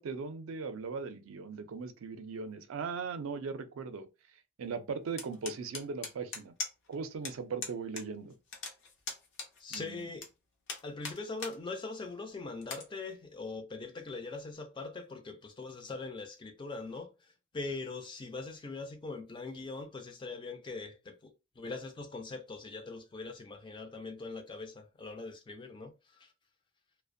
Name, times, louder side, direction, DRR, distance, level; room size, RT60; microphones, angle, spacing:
voice 1, 0.0-4.1 4.6-6.5 6.9-8.4 9.7-10.1, right 5 dB, 85° right, 0.4 m, -39 dB
sound 1, 5.2-6.9 7.2-7.3 7.6-8.0 8.3-10.3 10.7-11.6 12.0-12.1 12.6-12.8, left 4 dB, 60° left, 0.6 m, -40 dB
voice 2, 9.6-10.3 10.8-17.1 17.5-26.3, left 3 dB, 25° left, 0.3 m, -42 dB
2.4 x 2.0 x 2.5 m
head